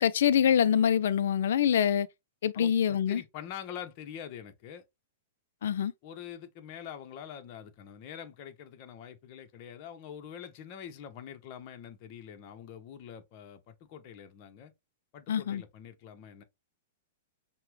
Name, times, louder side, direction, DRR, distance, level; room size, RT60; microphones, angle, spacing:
voice 1, 0.0-2.1 2.4-3.2 5.6-5.9 15.3-15.6, left 9 dB, 70° left, 0.3 m, -25 dB
voice 2, 2.5-4.8 6.0-14.7 15.1-16.4, left 9 dB, 45° left, 0.8 m, -45 dB
5.7 x 2.2 x 3.1 m
hypercardioid pair, 120°, 0 cm